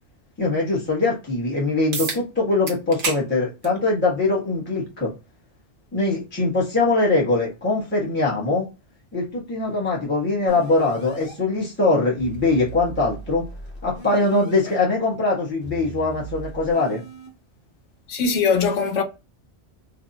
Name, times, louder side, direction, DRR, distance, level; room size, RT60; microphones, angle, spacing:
voice 1, 0.4-5.1 5.9-8.6 9.1-13.4 13.8-17.0, left 3 dB, 10° left, 0.9 m, -22 dB
sound 1, 1.9-2.2 2.7-3.2 3.6-3.8 4.9-5.0 9.9-10.0, right 4 dB, 85° right, 1.0 m, -28 dB
sound 2, 10.5-11.3 12.2-14.7 15.6-17.3, right 2 dB, 55° left, 1.1 m, -38 dB
voice 2, 18.1-19.0, left 5 dB, 85° left, 0.9 m, -21 dB
2.7 x 2.3 x 2.6 m
omnidirectional pair, 1.2 m